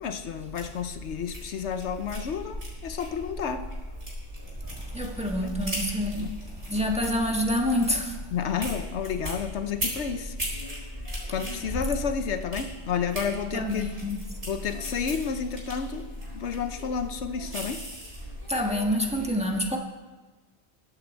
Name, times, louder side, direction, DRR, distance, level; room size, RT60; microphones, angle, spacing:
voice 1, 0.0-3.7 5.4-5.6 6.2-6.3 8.3-10.3 11.3-13.9 14.5-16.1 16.3-17.8, left 6 dB, 80° left, 8 dB, 1.1 m, -31 dB
sound 1, 0.5-19.2, equal, 55° right, 5.0 m, -37 dB
voice 2, 4.9-6.3 6.7-8.2 13.5-14.2 18.5-19.8, equal, 5° right, 0 dB, 1.5 m, -27 dB
22.0 x 8.2 x 4.5 m, 1.3 s
omnidirectional pair, 1.1 m